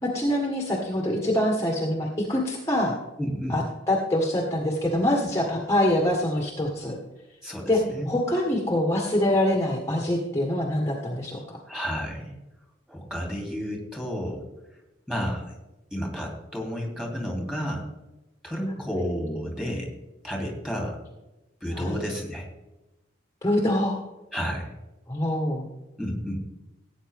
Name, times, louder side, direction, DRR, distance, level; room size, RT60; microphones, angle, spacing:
voice 1, 0.0-3.0 3.5-7.0 7.7-7.8 8.1-11.6 21.7-21.9 23.4-24.0 25.1-25.7, left 1 dB, 15° left, 0 dB, 1.6 m, -25 dB
voice 2, 3.2-3.5 7.4-8.2 11.7-12.3 12.9-14.4 15.1-15.5 15.9-17.8 18.4-19.9 20.2-21.0 21.6-22.5 24.3-24.7 26.0-26.4, equal, 5° right, 0 dB, 3.2 m, -31 dB
17.0 x 8.9 x 3.6 m, 0.98 s
head